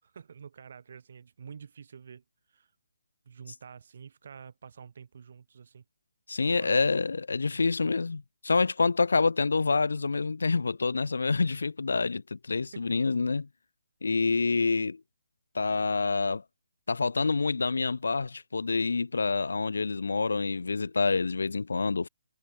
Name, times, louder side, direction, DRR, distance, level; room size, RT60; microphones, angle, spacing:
voice 1, 0.0-2.2 2.5-2.7 3.2-5.8 6.5-6.8 12.7-13.0, right 6 dB, 50° right, 6.6 m, -48 dB
voice 2, 6.3-13.5 14.0-15.0 15.5-16.4 16.9-22.1, left 4 dB, 85° left, 2.1 m, -27 dB
hypercardioid pair, 170°, 0 cm